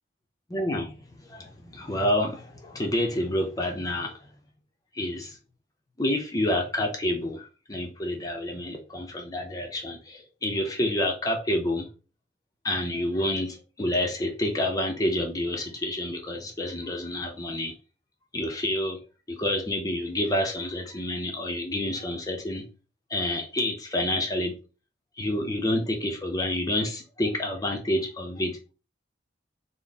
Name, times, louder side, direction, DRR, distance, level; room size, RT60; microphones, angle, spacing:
voice 1, 0.5-1.0 1.3-4.1 5.0-5.4 6.0-11.9 12.6-17.7 18.3-19.0 19.3-22.6 23.1-24.5 25.2-28.6, left 1 dB, 20° left, 0.5 m, -28 dB
4.0 x 2.0 x 3.4 m
head